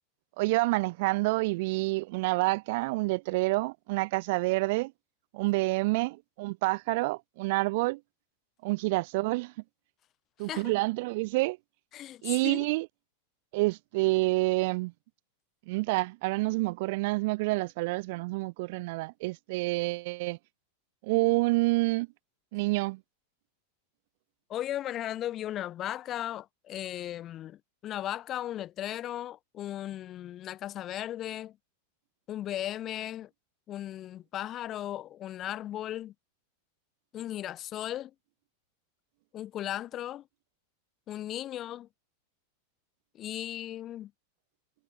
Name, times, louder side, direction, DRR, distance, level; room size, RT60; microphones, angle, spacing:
voice 1, 0.4-4.9 5.3-8.0 8.6-9.5 10.4-11.6 12.2-12.9 13.5-14.9 15.7-20.4 21.0-22.1 22.5-23.0, right 23 dB, 50° right, 0.7 m, -28 dB
voice 2, 11.9-12.7 24.5-31.6 32.3-33.3 33.7-36.1 37.1-38.1 39.3-40.2 41.1-41.9 43.1-44.1, left 12 dB, 30° left, 1.3 m, -36 dB
figure-of-eight pair, 90°, 0 cm